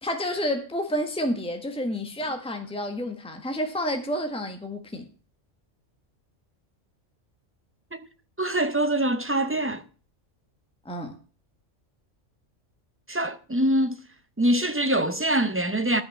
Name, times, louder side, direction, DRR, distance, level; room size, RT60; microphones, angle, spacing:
voice 1, 0.0-5.1 10.8-11.1, equal, 5° left, 1.5 m, -29 dB
voice 2, 8.4-9.8 13.1-14.0 14.4-16.0, right 1 dB, 20° right, 0.4 m, -24 dB
12.0 x 6.0 x 7.3 m
omnidirectional pair, 1.3 m